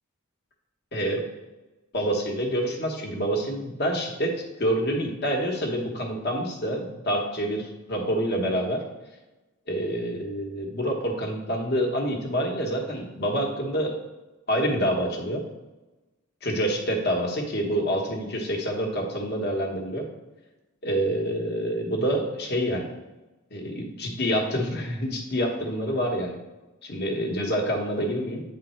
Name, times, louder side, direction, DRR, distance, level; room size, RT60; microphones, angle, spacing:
voice 1, 0.9-1.2 1.9-8.8 9.7-14.0 14.5-15.4 16.4-20.1 20.8-22.9 23.5-26.4 26.8-28.4, equal, 50° left, 1 dB, 1.1 m, -27 dB
8.8 x 3.7 x 4.3 m, 1.1 s
head